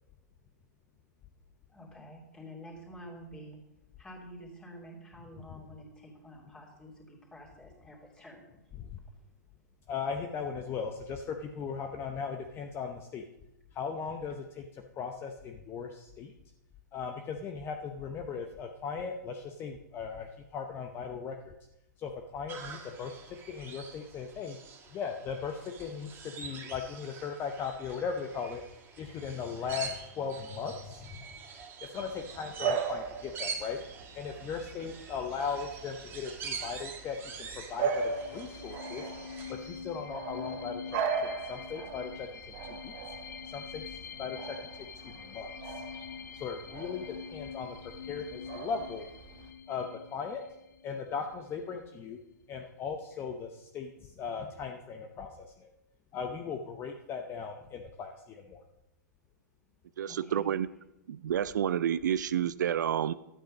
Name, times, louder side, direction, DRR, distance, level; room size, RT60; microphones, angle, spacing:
voice 1, 1.7-3.6 4.0-8.9 53.1-53.2 60.0-60.5, equal, 10° left, -1 dB, 2.8 m, -49 dB
voice 2, 9.9-13.2 13.7-14.7 15.0-16.3 16.9-21.5 22.0-23.1 23.5-24.6 24.9-28.6 29.0-31.2 31.9-33.8 34.1-39.1 39.5-42.3 42.7-42.9 43.4-44.6 45.0-45.8 46.4-49.1 49.7-50.4 50.8-52.2 52.5-55.7 56.1-58.6, left 6 dB, 25° left, 4 dB, 0.8 m, -38 dB
sound 1, 22.5-39.5, right 5 dB, 20° right, 1.6 m, -45 dB
Bark / Bird vocalization bird call bird song, 32.0-49.5, right 6 dB, 45° right, 1.3 m, -39 dB
sound 2, 37.9-51.3, left 7 dB, 70° left, 0.9 m, -45 dB
voice 3, 60.0-60.7 61.1-63.1, right 9 dB, 75° right, 16 dB, 0.4 m, -29 dB
12.0 x 8.9 x 5.2 m, 0.90 s
hypercardioid pair, 135°, 10 cm